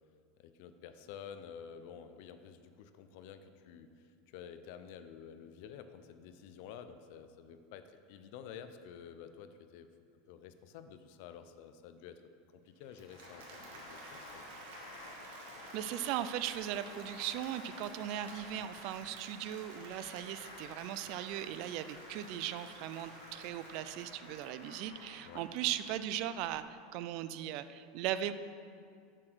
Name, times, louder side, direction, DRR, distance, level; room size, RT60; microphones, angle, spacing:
voice 1, 0.4-9.9 10.3-14.5 25.2-25.5, left 8 dB, 55° left, 10 dB, 0.6 m, -51 dB
Applause, 12.8-25.8, right 3 dB, 75° right, 1.9 m, -53 dB
sound 1, 12.9-26.6, left 3 dB, 90° left, 1.2 m, -53 dB
voice 2, 15.7-28.3, right 11 dB, 50° right, 13 dB, 0.4 m, -38 dB
7.4 x 6.8 x 6.2 m, 2.3 s
supercardioid pair, 165°, 0 cm